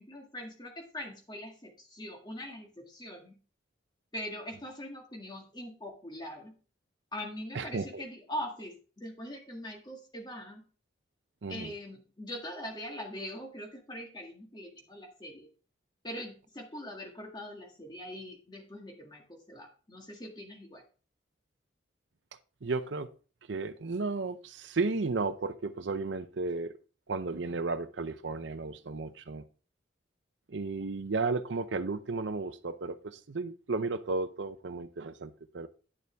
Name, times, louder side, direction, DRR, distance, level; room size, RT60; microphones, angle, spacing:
voice 1, 0.0-3.3 4.1-6.5 7.1-10.6 11.5-15.5 16.0-20.8, left 1 dB, 25° left, 1.8 m, -42 dB
voice 2, 7.5-8.0 11.4-11.7 22.6-23.1 23.5-26.8 27.1-29.4 30.5-35.7, right 3 dB, 70° right, 0.6 m, -34 dB
9.9 x 6.8 x 3.4 m
head